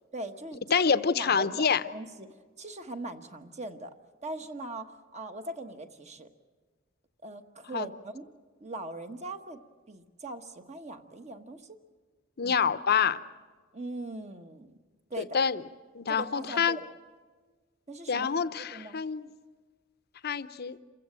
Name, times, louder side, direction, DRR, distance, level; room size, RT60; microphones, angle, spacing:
voice 1, 0.1-2.3 2.6-3.9 4.2-6.3 7.2-8.3 8.6-9.6 9.9-11.8 12.4-12.6 13.7-14.7 15.1-15.4 16.1-16.9 17.9-19.0, right 1 dB, 35° right, 7 dB, 1.3 m, -40 dB
voice 2, 0.7-1.8 7.7-7.9 12.4-13.2 15.2-15.6 15.9-16.8 18.1-19.3 20.2-20.8, left 6 dB, 50° left, 13 dB, 0.7 m, -26 dB
27.5 x 16.0 x 8.7 m, 1.4 s
head